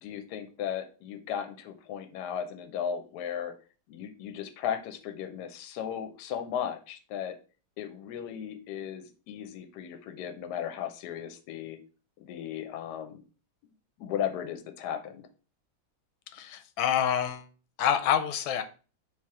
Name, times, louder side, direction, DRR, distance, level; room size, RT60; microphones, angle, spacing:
voice 1, 0.0-3.5 3.9-7.4 7.8-11.8 12.2-13.2 14.0-15.3, left 9 dB, 70° left, 1.1 m, -36 dB
voice 2, 16.3-17.5 17.8-18.6, left 9 dB, 90° left, 1.4 m, -27 dB
3.4 x 2.8 x 4.6 m
omnidirectional pair, 2.1 m